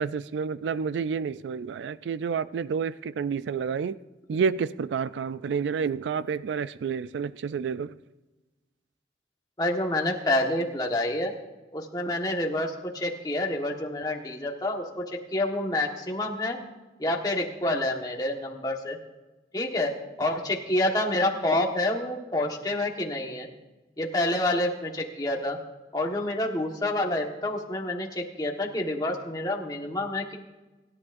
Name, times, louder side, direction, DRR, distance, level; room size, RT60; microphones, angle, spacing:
voice 1, 0.0-4.0 4.3-8.0, right 6 dB, 85° right, 0.3 m, -29 dB
voice 2, 9.6-11.3 11.7-16.6 17.0-19.0 19.5-23.5 24.0-25.6 25.9-30.4, left 1 dB, 20° left, 1.4 m, -28 dB
25.5 x 11.0 x 2.6 m
head